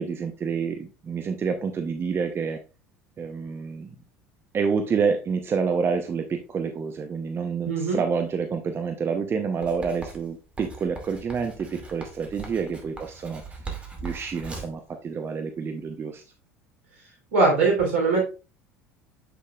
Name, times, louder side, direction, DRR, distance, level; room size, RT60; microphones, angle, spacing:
voice 1, 0.0-2.6 3.2-3.9 4.5-13.4 13.7-16.2, right 5 dB, 30° right, 6 dB, 0.8 m, -28 dB
voice 2, 7.6-8.0 17.3-18.2, right 3 dB, 70° right, 0 dB, 3.3 m, -21 dB
Writing, 9.6-14.8, right 4 dB, 15° right, 2.4 m, -40 dB
7.3 x 6.9 x 2.4 m, 0.31 s
hypercardioid pair, 70°, 7 cm